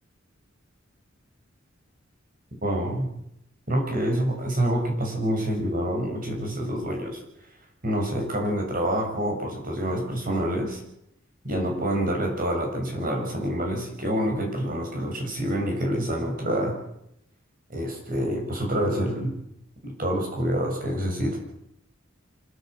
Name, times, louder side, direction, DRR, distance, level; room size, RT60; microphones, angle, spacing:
voice 1, 2.6-3.1 3.7-7.2 7.8-10.8 11.4-16.8 17.7-19.4 19.8-21.4, equal, 45° right, 2 dB, 6.9 m, -27 dB
26.0 x 14.0 x 7.9 m, 0.78 s
head